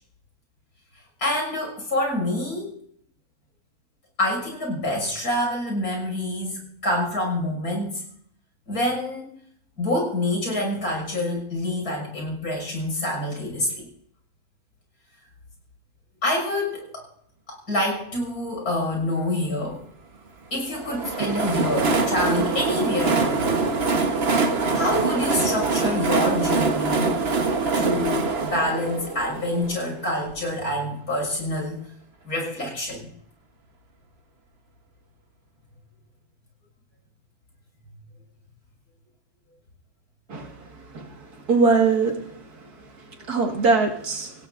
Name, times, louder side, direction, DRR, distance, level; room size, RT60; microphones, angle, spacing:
voice 1, 1.2-2.8 4.2-8.0 8.7-9.3 9.8-13.9 16.2-17.1 17.5-19.8 20.5-23.7 24.7-27.2 27.7-31.8 32.2-33.1, left 1 dB, 80° left, 1 dB, 6.6 m, -27 dB
Train, 20.7-30.4, right 3 dB, 45° right, 1.4 m, -24 dB
voice 2, 40.9-42.6 43.3-44.3, right 4 dB, 80° right, 2 dB, 2.4 m, -22 dB
27.0 x 16.5 x 2.6 m, 0.67 s
omnidirectional pair, 1.6 m